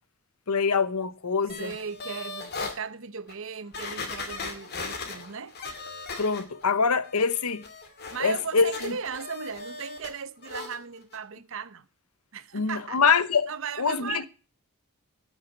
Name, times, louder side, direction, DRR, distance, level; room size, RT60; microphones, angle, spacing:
voice 1, 0.5-1.7 6.2-7.6 8.2-8.9 12.5-13.5 13.8-14.3, left 5 dB, 85° left, 1.0 m, -24 dB
sound 1, 1.5-2.8 3.3-3.4 3.7-6.7 7.0-10.1 10.4-10.8 11.1-11.2, left 3 dB, 45° left, 2.3 m, -38 dB
voice 2, 1.6-5.6 8.1-11.9 12.3-13.0 13.5-14.3, right 6 dB, 60° right, 0.8 m, -37 dB
14.5 x 6.5 x 7.9 m
head